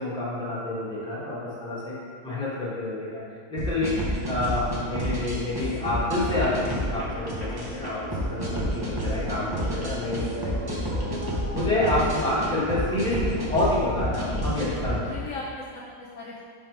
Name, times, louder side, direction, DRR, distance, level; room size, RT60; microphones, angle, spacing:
voice 1, 0.0-1.9 2.2-3.2 3.5-8.0 8.3-11.2 11.5-15.1, left 1 dB, 5° left, -9 dB, 1.3 m, -28 dB
sound 1, 3.6-15.0, equal, 25° right, 0.5 m, -30 dB
sound 2, 6.2-14.6, equal, 85° right, 2.2 m, -41 dB
Dog, 9.2-14.9, right 2 dB, 70° right, 1.3 m, -43 dB
voice 2, 14.9-16.5, left 3 dB, 65° left, -4 dB, 1.0 m, -39 dB
5.7 x 3.7 x 4.6 m, 2.1 s
omnidirectional pair, 1.6 m